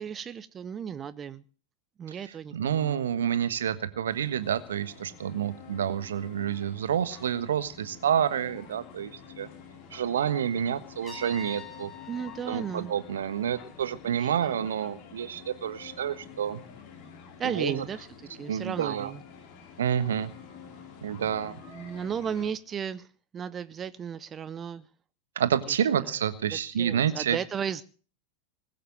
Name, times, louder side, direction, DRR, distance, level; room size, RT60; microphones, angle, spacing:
voice 1, 0.0-1.4 2.0-3.0 12.1-12.9 14.0-14.6 17.4-19.2 21.7-23.1 23.3-24.9 26.0-26.1 26.8-27.8, right 7 dB, 25° right, 0.6 m, -35 dB
voice 2, 2.5-9.1 9.4-9.5 9.9-11.9 12.5-16.6 17.4-17.8 18.5-19.1 19.8-20.3 21.0-21.6 25.3-27.4, right 9 dB, 65° right, 1.3 m, -28 dB
sound 1, 4.1-22.5, left 6 dB, 45° left, 4.4 m, -49 dB
Trumpet, 11.0-13.9, left 7 dB, 15° left, 3.6 m, -47 dB
20.5 x 7.6 x 7.6 m
figure-of-eight pair, 90°, 0 cm